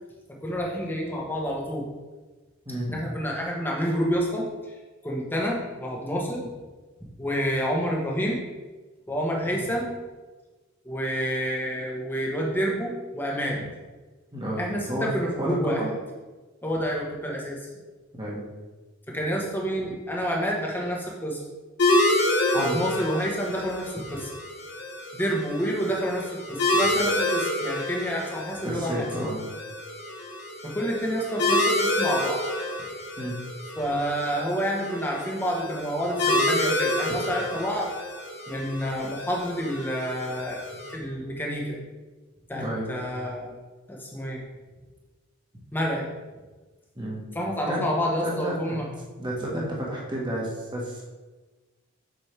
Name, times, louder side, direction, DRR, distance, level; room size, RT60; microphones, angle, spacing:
voice 1, 0.4-1.9 2.8-4.4 5.0-6.5 7.2-8.4 9.1-9.9 10.8-13.6 14.6-15.8 16.6-17.6 19.1-21.4 22.5-24.3 25.1-29.1 30.6-32.4 33.7-37.9 38.5-40.6 40.9-41.8 42.5-43.5 43.9-44.4 45.7-46.1 47.3-48.9, equal, 10° left, -2 dB, 1.1 m, -28 dB
voice 2, 2.7-3.0 13.5-13.6 14.3-15.1 15.4-15.9 18.2-18.4 22.5-22.8 28.6-29.4 33.2-33.4 37.1-37.2 42.5-42.9 46.9-47.3 47.7-47.8 48.2-48.9 49.2-51.1, equal, 20° right, -4 dB, 1.5 m, -31 dB
sound 1, 21.8-40.9, left 1 dB, 55° left, 1.5 m, -28 dB
7.2 x 5.3 x 3.4 m, 1.2 s
head